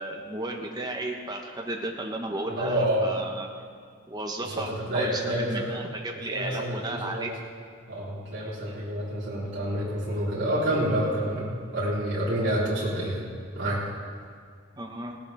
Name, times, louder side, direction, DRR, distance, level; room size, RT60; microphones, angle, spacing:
voice 1, 0.0-3.5 4.1-7.3 14.8-15.2, right 2 dB, 20° right, 1 dB, 1.0 m, -34 dB
voice 2, 2.6-3.1 4.5-5.7 6.3-7.3 7.9-13.3 13.5-13.8, right 1 dB, 55° right, -9 dB, 4.0 m, -28 dB
17.5 x 13.0 x 3.5 m, 2.1 s
head